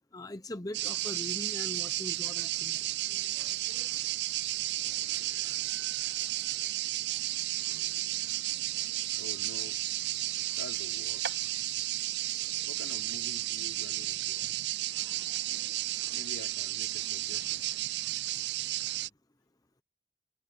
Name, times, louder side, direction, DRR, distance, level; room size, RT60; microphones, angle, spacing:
voice 1, 0.1-3.0, left 1 dB, 20° left, 0.8 m, -41 dB
sound 1, 0.7-19.1, right 16 dB, 60° right, 0.4 m, -33 dB
sound 2, 8.4-15.6, right 5 dB, 75° right, 4.9 m, -51 dB
voice 2, 9.1-9.8 10.6-11.7 12.7-14.6 16.1-17.7, left 2 dB, 85° left, 4.9 m, -48 dB
head